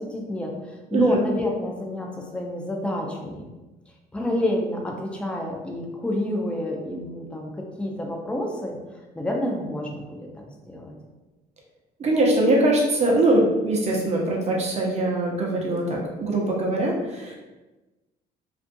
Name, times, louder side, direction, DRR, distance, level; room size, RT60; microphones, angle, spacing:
voice 1, 0.0-3.5 4.1-8.8 9.1-10.2 10.7-10.9, left 1 dB, 5° left, 0 dB, 0.4 m, -28 dB
voice 2, 0.9-1.2 12.0-17.4, right 1 dB, 40° right, -2 dB, 0.7 m, -22 dB
2.5 x 2.4 x 2.5 m, 1.1 s
cardioid pair, 110°, 17 cm